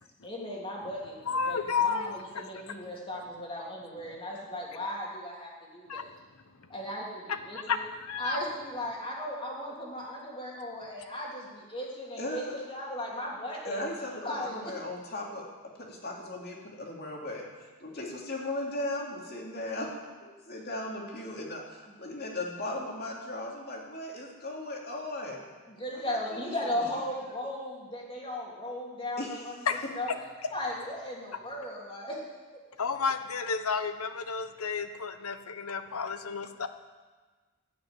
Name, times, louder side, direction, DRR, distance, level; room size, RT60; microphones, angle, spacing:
voice 1, 0.2-1.2 1.5-6.1 6.7-7.0 7.5-7.8 8.2-13.8 14.2-14.6 25.8-29.6 29.9-30.1 30.5-32.2, left 1 dB, 25° left, -3 dB, 2.9 m, -36 dB
voice 2, 1.3-2.4 5.9-6.0 7.7-8.4 29.7-29.8 32.8-36.7, left 5 dB, 80° left, 9 dB, 1.0 m, -31 dB
voice 3, 12.2-12.6 13.6-15.5 15.7-19.9 20.2-25.5 25.9-26.9 29.2-29.6, left 1 dB, 45° left, -2 dB, 2.7 m, -37 dB
15.5 x 6.4 x 8.9 m, 1.4 s
head